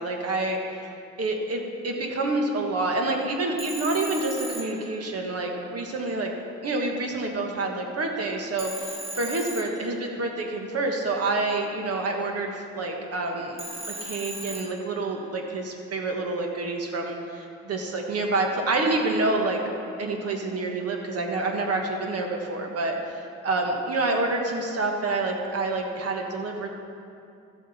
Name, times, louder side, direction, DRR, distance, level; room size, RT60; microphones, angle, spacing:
voice 1, 0.0-6.3 6.6-13.6 13.9-19.6 20.0-26.7, right 2 dB, 55° right, 2 dB, 1.5 m, -28 dB
Telephone, 3.6-5.5 8.6-10.4 13.6-15.3, right 1 dB, 20° right, 1.4 m, -38 dB
13.5 x 7.4 x 4.3 m, 2.6 s
cardioid pair, 90°, 30 cm